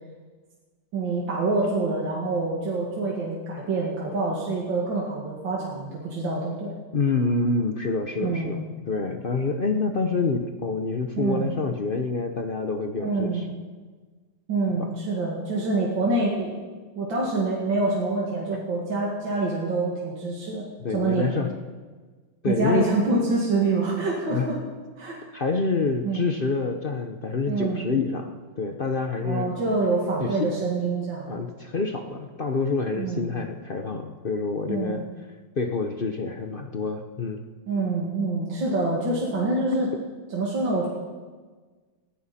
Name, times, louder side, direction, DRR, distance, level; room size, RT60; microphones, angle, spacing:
voice 1, 0.9-6.7 8.2-8.6 11.2-11.5 13.0-13.4 14.5-16.6 17.0-20.7 20.9-21.3 22.5-24.6 25.0-25.2 26.0-26.2 27.5-27.8 29.2-31.3 33.0-33.3 34.7-35.0 37.7-39.9 40.3-40.9, right 3 dB, 80° right, -4 dB, 2.9 m, -26 dB
voice 2, 6.9-13.5 14.8-14.9 20.8-21.5 22.4-22.9 24.3-24.5 25.3-29.5 30.2-30.5 31.3-35.1 35.6-37.4, left 3 dB, 45° left, 5 dB, 0.7 m, -27 dB
19.5 x 15.0 x 4.3 m, 1.4 s
omnidirectional pair, 2.0 m